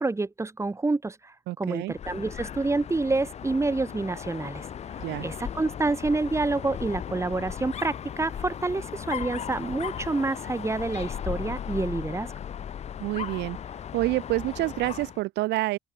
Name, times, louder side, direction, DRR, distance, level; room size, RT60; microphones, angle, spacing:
voice 1, 0.0-4.7 5.2-12.3, right 3 dB, 15° right, 2.1 m, -28 dB
voice 2, 1.5-1.9 5.0-5.3 13.0-13.6 13.9-15.8, right 19 dB, 75° right, 0.4 m, -28 dB
Dog, 1.9-15.2, left 8 dB, 40° left, 0.6 m, -37 dB
open air
cardioid pair, 100°, 18 cm